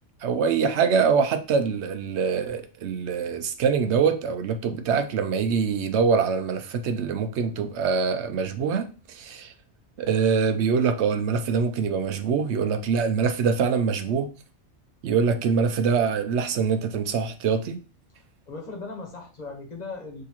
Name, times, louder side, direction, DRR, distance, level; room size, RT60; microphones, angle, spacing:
voice 1, 0.2-9.5 10.0-14.3 15.0-17.8, right 6 dB, 75° right, 0.9 m, -24 dB
voice 2, 18.1-20.2, left 3 dB, 40° left, 1.3 m, -38 dB
6.4 x 2.8 x 2.9 m
omnidirectional pair, 1.2 m